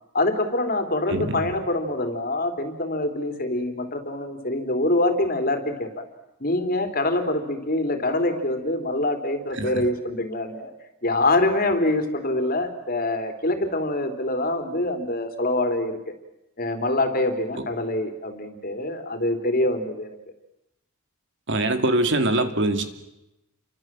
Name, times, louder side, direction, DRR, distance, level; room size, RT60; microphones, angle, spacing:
voice 1, 0.1-6.0 6.4-10.7 11.0-16.1 16.6-20.2, left 2 dB, 40° left, 7 dB, 3.5 m, -25 dB
voice 2, 1.1-1.5 9.5-9.8 17.6-17.7 21.5-22.8, right 2 dB, 55° right, 8 dB, 2.5 m, -23 dB
30.0 x 25.0 x 7.6 m, 0.90 s
head